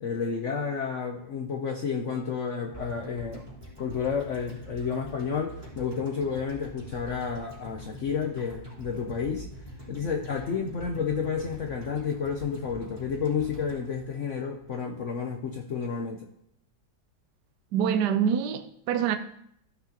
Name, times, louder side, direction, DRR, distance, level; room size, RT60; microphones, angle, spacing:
voice 1, 0.0-3.4 3.8-9.5 9.9-16.3, left 6 dB, 60° left, 0.9 m, -31 dB
sound 1, 2.7-14.9 15.2-15.3, right 1 dB, 25° right, 3.6 m, -44 dB
voice 2, 17.7-19.2, right 8 dB, 70° right, 1.1 m, -25 dB
14.0 x 6.0 x 2.9 m
omnidirectional pair, 1.9 m